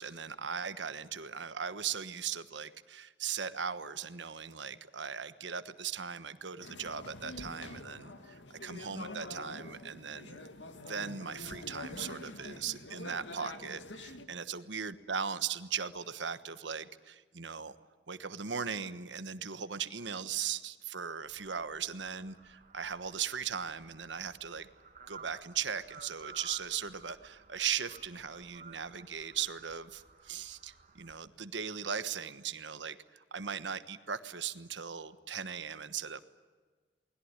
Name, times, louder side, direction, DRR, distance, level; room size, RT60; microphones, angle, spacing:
voice 1, 0.0-10.4 10.9-17.7 18.1-24.7 25.1-36.2, right 7 dB, 85° right, 12 dB, 1.3 m, -38 dB
sound 1, 6.6-14.3, left 2 dB, 90° left, 2.1 m, -46 dB
sound 2, 21.2-31.2, right 4 dB, 45° right, 2.0 m, -55 dB
29.0 x 20.5 x 9.9 m, 1.4 s
head